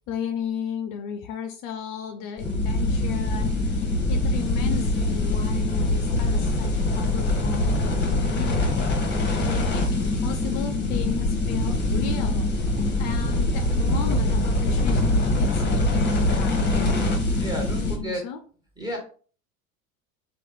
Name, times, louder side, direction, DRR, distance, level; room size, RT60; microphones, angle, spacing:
voice 1, 0.1-8.7 9.4-12.7 13.0-16.7 17.7-18.4, left 8 dB, 50° left, 6 dB, 0.5 m, -34 dB
sound 1, 2.4-18.0, left 2 dB, 25° left, 1.0 m, -23 dB
voice 2, 17.4-18.2 18.8-19.0, equal, 10° right, 0 dB, 1.5 m, -31 dB
3.0 x 2.4 x 3.5 m, 0.41 s
hypercardioid pair, 80°, 41 cm